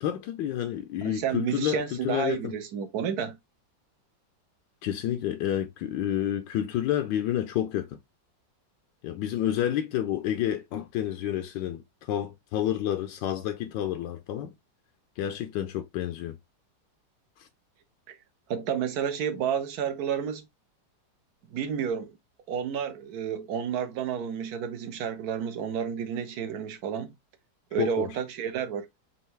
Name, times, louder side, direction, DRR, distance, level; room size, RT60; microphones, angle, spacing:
voice 1, 0.0-2.5 4.8-7.9 9.0-11.8 12.1-14.5 15.2-16.3 27.8-28.1, left 11 dB, 80° left, 1.2 m, -29 dB
voice 2, 1.0-3.4 18.1-18.2 18.5-20.4 21.5-22.1 22.5-27.1 27.7-28.9, right 8 dB, 65° right, 1.1 m, -30 dB
5.6 x 2.6 x 3.1 m
omnidirectional pair, 2.0 m